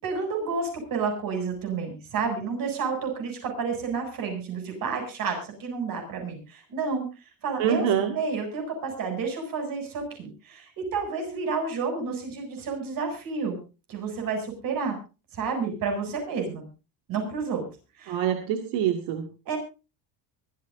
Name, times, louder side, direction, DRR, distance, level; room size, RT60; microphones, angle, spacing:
voice 1, 0.0-7.1 7.4-7.9 8.1-13.6 13.9-15.0 15.3-16.7 17.1-17.7 18.0-18.2 19.5-19.6, right 5 dB, 50° right, 4 dB, 7.4 m, -30 dB
voice 2, 7.6-8.2 18.1-19.3, right 9 dB, 85° right, 5 dB, 2.2 m, -25 dB
23.5 x 14.5 x 2.7 m, 0.33 s
cardioid pair, 160°, 44 cm